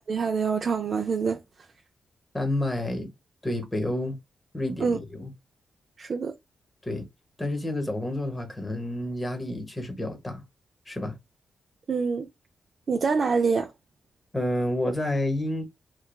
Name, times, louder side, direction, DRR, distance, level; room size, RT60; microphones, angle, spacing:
voice 1, 0.1-1.4 4.8-5.0 6.0-6.3 11.9-12.3 12.9-13.7, right 5 dB, 55° right, 0.3 m, -25 dB
voice 2, 2.3-3.1 3.4-4.2 4.5-5.3 6.8-7.1 7.4-10.4 10.9-11.2 14.3-15.7, left 1 dB, 20° left, 0.9 m, -29 dB
3.2 x 2.1 x 2.2 m
cardioid pair, 75°, 0 cm